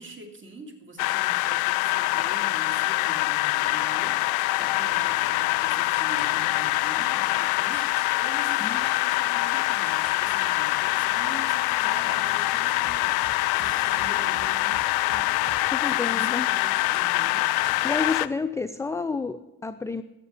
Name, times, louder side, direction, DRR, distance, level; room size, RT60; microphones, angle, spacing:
voice 1, 0.0-4.2 4.6-7.9 8.1-15.5 15.8-17.5, right 2 dB, 25° right, 4 dB, 2.8 m, -44 dB
sound 1, 1.0-18.3, left 19 dB, 55° left, 0.5 m, -24 dB
sound 2, 3.0-15.6, right 3 dB, 45° right, 2.2 m, -49 dB
sound 3, 4.7-4.8 5.1-5.2 5.8-6.8 7.6-9.3 9.6-10.8 11.1-12.5 13.5-14.6 15.9-18.1, right 1 dB, 70° right, 5.1 m, -51 dB
voice 2, 15.6-16.5 17.8-20.0, left 4 dB, 5° left, 10 dB, 0.5 m, -30 dB
14.0 x 8.2 x 7.1 m, 0.98 s
hypercardioid pair, 55°, 44 cm